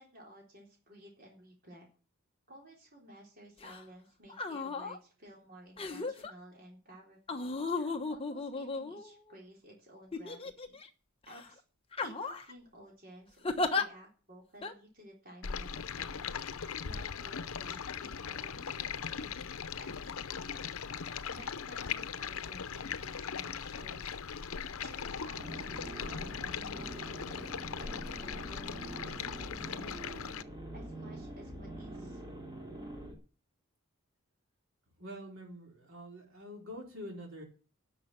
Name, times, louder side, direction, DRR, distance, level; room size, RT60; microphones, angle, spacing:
voice 1, 0.0-1.9 2.5-7.5 7.7-10.8 11.3-11.6 12.0-13.4 13.7-19.5 19.8-24.2 24.8-27.5 27.8-28.7 29.0-29.9 30.2-30.4 30.7-32.2, right 1 dB, 45° right, -2 dB, 3.9 m, -54 dB
sound 1, 3.6-3.8 4.3-5.0 5.8-6.3 7.3-9.3 10.1-10.9 11.3-11.5 11.9-12.5 13.4-13.8 14.6-14.7, left 3 dB, 25° left, 1.1 m, -35 dB
Stream, 15.4-30.4, left 7 dB, 80° left, 0.7 m, -39 dB
sound 2, 25.3-33.1, right 1 dB, 20° right, 2.6 m, -45 dB
voice 2, 35.0-37.4, equal, 65° right, 0 dB, 4.2 m, -46 dB
11.0 x 6.7 x 8.9 m, 0.37 s
head